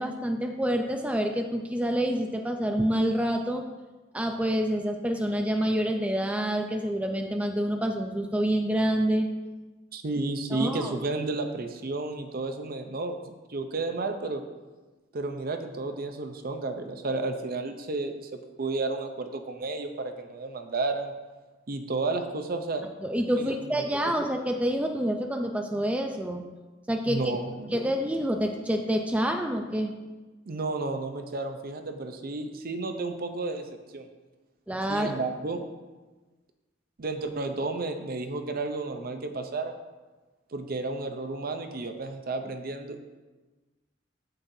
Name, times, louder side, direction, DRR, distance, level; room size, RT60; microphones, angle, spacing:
voice 1, 0.0-3.6 4.1-9.3 10.5-10.9 23.0-26.4 26.9-27.2 27.7-29.9 34.7-35.2, equal, 5° right, 4 dB, 0.4 m, -27 dB
voice 2, 9.9-13.2 13.5-14.4 15.1-18.3 18.6-21.1 21.7-22.8 23.3-23.7 24.1-24.2 27.1-27.8 30.5-33.7 33.9-34.1 34.9-35.6 37.0-39.7 40.5-43.1, right 3 dB, 50° right, 6 dB, 0.6 m, -32 dB
7.6 x 7.5 x 2.7 m, 1.2 s
head